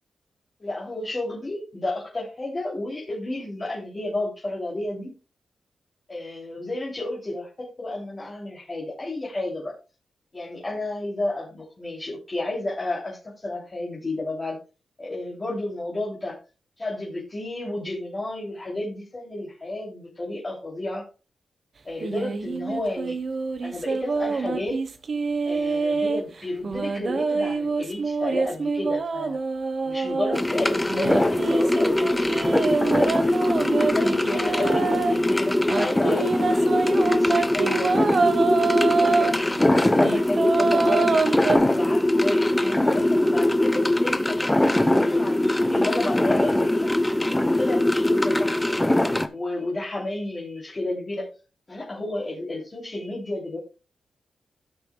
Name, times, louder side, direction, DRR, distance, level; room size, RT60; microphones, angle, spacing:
voice 1, 0.6-5.1 6.1-7.5 7.8-9.7 10.3-14.6 15.0-16.4 16.8-21.0 21.8-23.2 23.6-24.8 25.4-29.4 29.8-33.1 33.8-37.9 38.8-41.2 41.7-46.9 47.4-48.6 49.3-51.3 51.7-53.6, left 2 dB, 30° left, -5 dB, 3.1 m, -31 dB
sound 1, 22.0-26.2 26.6-30.4 30.9-35.2 35.7-39.3 39.8-41.6, right 4 dB, 50° right, 1.1 m, -25 dB
sound 2, 30.3-49.3, left 1 dB, 10° left, 0.8 m, -22 dB
17.0 x 6.4 x 2.3 m, 0.32 s
cardioid pair, 90°, 0 cm